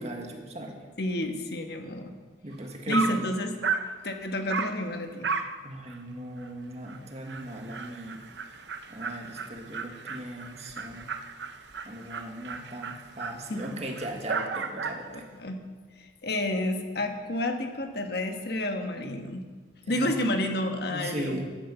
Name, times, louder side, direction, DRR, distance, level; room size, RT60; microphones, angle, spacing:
voice 1, 0.0-0.8 2.4-3.3 5.6-8.2 8.9-11.1 11.8-15.3 19.9-20.2 20.9-21.4, right 1 dB, 40° right, 2 dB, 1.7 m, -38 dB
voice 2, 1.0-2.1 2.9-3.5 4.0-5.3 13.5-13.8 15.0-15.6 16.0-19.4 19.9-21.4, left 1 dB, 60° left, 5 dB, 1.3 m, -30 dB
Dog, 2.5-2.6 2.9-3.2 3.6-3.9 4.5-4.8 5.2-5.6 5.9-6.0 6.4-6.5 6.9-7.0 7.3-15.1, right 4 dB, 75° right, 0.8 m, -34 dB
10.5 x 10.0 x 7.0 m, 1.5 s
head